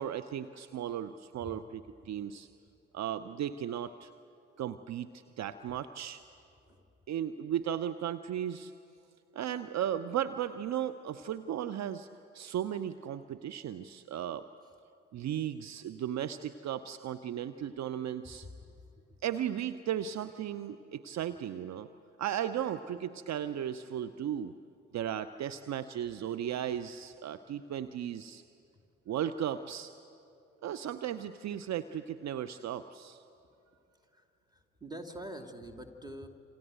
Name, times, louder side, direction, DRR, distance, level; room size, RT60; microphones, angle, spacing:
voice 1, 0.0-2.5 2.9-4.1 4.6-5.1 5.4-6.2 7.1-8.7 9.3-12.1 12.3-14.4 15.1-18.5 19.2-21.9 22.2-24.5 24.9-28.4 29.1-29.9 30.6-33.2, right 10 dB, 50° right, 12 dB, 0.8 m, -36 dB
voice 2, 18.6-19.2 34.0-36.3, right 1 dB, 10° right, 3 dB, 2.9 m, -46 dB
28.0 x 26.5 x 8.0 m, 2.6 s
figure-of-eight pair, 45°, 36 cm